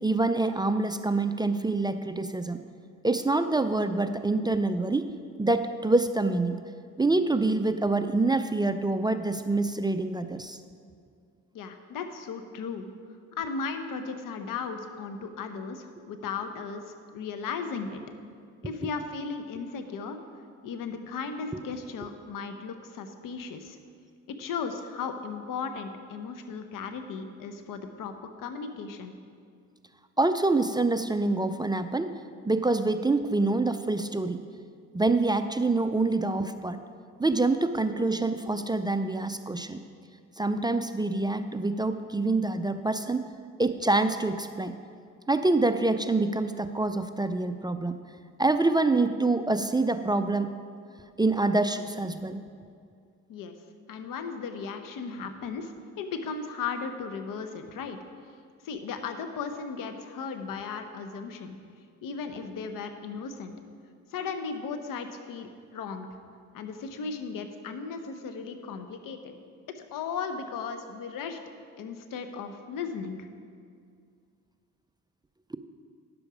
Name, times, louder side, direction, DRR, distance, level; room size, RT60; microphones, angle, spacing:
voice 1, 0.0-2.6 3.0-5.1 5.4-6.6 7.0-10.6 21.5-21.6 30.2-32.1 32.4-34.4 34.9-36.8 37.2-39.8 40.4-43.3 43.6-44.8 45.3-48.0 48.4-50.5 51.2-52.4, right 2 dB, 15° right, 9 dB, 0.4 m, -26 dB
voice 2, 11.5-12.9 13.4-18.0 18.6-20.2 20.6-23.8 24.3-28.1 28.4-29.1 53.3-53.5 53.9-58.0 58.6-61.6 62.0-63.5 64.1-66.1 66.5-69.3 69.7-71.4 71.8-73.3, left 5 dB, 75° left, 7 dB, 0.9 m, -36 dB
10.5 x 6.9 x 4.9 m, 2.2 s
supercardioid pair, 70°, 33 cm